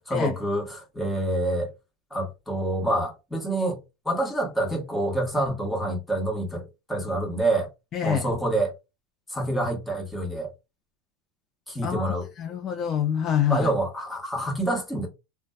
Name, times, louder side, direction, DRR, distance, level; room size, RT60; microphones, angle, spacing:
voice 1, 0.1-1.7 2.1-3.8 4.0-7.7 8.0-8.7 9.3-10.5 11.7-12.3 13.5-15.1, right 1 dB, 5° left, 1.1 m, -27 dB
voice 2, 7.9-8.3 11.8-13.7, left 8 dB, 40° left, 0.4 m, -26 dB
2.5 x 2.1 x 2.2 m
supercardioid pair, 105°, 0 cm